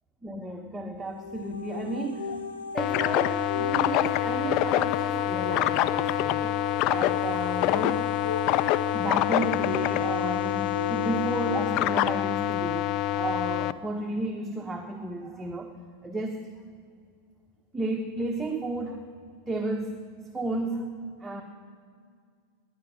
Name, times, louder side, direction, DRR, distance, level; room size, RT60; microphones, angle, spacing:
voice 1, 0.2-6.6 6.9-8.3 8.9-15.7 16.0-16.4 17.7-19.0 19.5-20.0 20.3-20.9 21.2-21.4, right 2 dB, 10° right, 2 dB, 1.4 m, -33 dB
sound 1, 1.0-13.9, left 4 dB, 65° left, 1.4 m, -37 dB
sound 2, 2.8-13.7, left 13 dB, 40° left, 0.5 m, -26 dB
20.5 x 9.5 x 6.8 m, 2.1 s
figure-of-eight pair, 90°, 0 cm